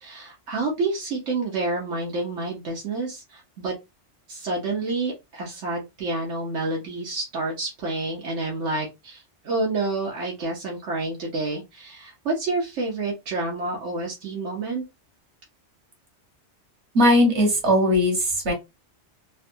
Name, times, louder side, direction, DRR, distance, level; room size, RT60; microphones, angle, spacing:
voice 1, 0.0-3.7 4.3-14.8, right 2 dB, 90° right, 1.3 m, -29 dB
voice 2, 16.9-18.5, left 1 dB, 70° right, 1.6 m, -19 dB
3.9 x 2.2 x 2.6 m
omnidirectional pair, 1.2 m